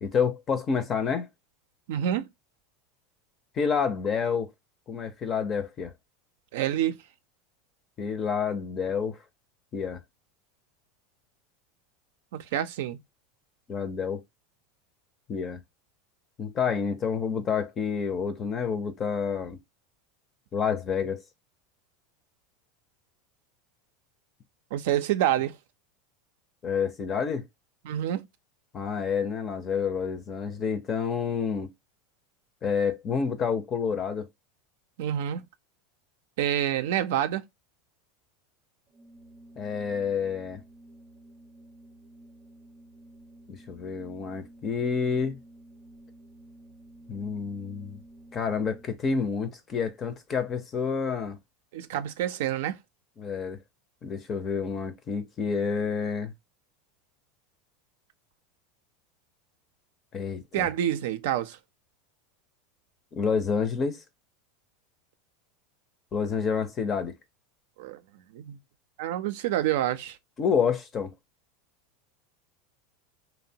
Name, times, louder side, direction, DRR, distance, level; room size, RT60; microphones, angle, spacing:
voice 1, 0.0-1.3 3.5-4.5 4.9-5.9 8.0-9.2 9.7-10.0 13.7-14.2 15.3-15.6 16.4-19.6 20.5-21.2 26.6-27.4 28.7-31.7 32.6-34.3 39.6-40.6 43.5-45.4 47.1-48.0 48.3-51.4 53.2-53.6 54.0-56.3 60.1-60.7 63.1-64.0 66.1-67.1 70.4-71.1, left 6 dB, 30° left, 0.5 m, -28 dB
voice 2, 1.9-2.3 6.5-7.0 12.3-13.0 24.7-25.6 27.9-28.3 35.0-35.4 36.4-37.4 51.7-52.8 60.5-61.6 67.8-68.0 68.3-68.6 69.0-70.2, right 11 dB, 75° right, 0.4 m, -27 dB
Organ, 38.9-49.2, right 1 dB, 30° right, 0.6 m, -52 dB
2.9 x 2.0 x 2.7 m
supercardioid pair, 120°, 0 cm